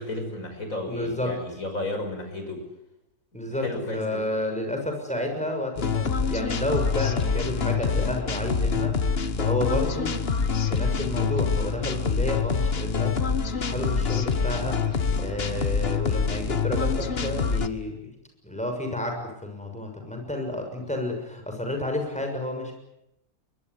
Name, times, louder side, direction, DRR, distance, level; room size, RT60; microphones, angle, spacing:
voice 1, 0.0-2.6 3.3-4.2 11.2-11.3, left 1 dB, 60° left, 5 dB, 6.2 m, -33 dB
voice 2, 0.9-1.4 3.3-3.7 3.9-10.1 10.6-18.1 18.4-22.7, left 1 dB, 5° left, 3 dB, 6.6 m, -31 dB
sound 1, 5.8-17.7, left 5 dB, 45° left, 1.5 m, -26 dB
23.0 x 21.5 x 9.7 m, 0.86 s
omnidirectional pair, 1.6 m